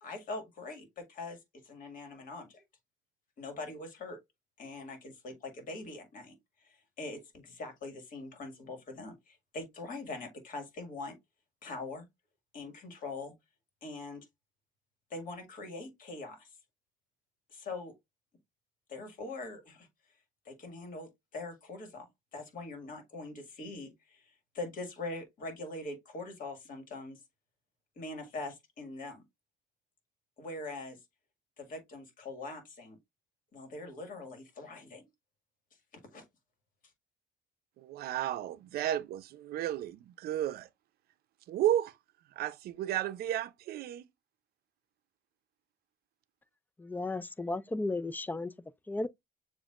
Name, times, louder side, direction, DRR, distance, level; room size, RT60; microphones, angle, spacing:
voice 1, 0.0-2.6 3.4-4.2 4.6-6.4 6.6-11.2 11.6-12.1 12.5-13.3 13.8-14.3 15.1-16.5 17.5-17.9 18.9-19.9 20.5-22.1 22.3-27.2 28.0-29.2 30.4-31.0 31.6-33.0 33.5-35.0 35.9-36.2, left 2 dB, 55° left, 1.9 m, -43 dB
voice 2, 37.8-40.7 41.5-41.9 42.4-44.0, right 12 dB, 65° right, 0.6 m, -33 dB
voice 3, 46.8-48.5 48.9-49.1, left 2 dB, 10° left, 0.3 m, -34 dB
7.0 x 2.6 x 2.4 m
cardioid pair, 110°, 17 cm